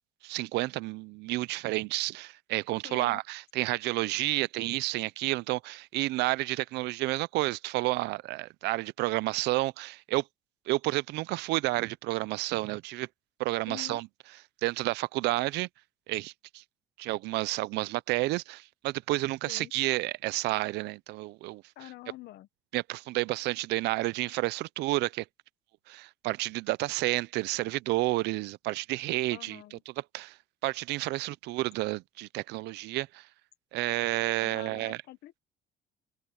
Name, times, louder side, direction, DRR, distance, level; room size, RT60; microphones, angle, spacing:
voice 1, 0.2-10.2 10.7-13.1 13.4-14.1 14.6-15.7 16.1-16.6 17.0-21.6 22.7-25.3 25.9-30.4 30.6-33.3 33.7-35.0, right 20 dB, 85° right, 0.6 m, -30 dB
voice 2, 2.8-3.2 13.7-14.0 19.5-19.7 21.8-22.5 29.3-29.8 34.4-35.4, left 16 dB, 75° left, 1.3 m, -46 dB
cardioid pair, 110°, 17 cm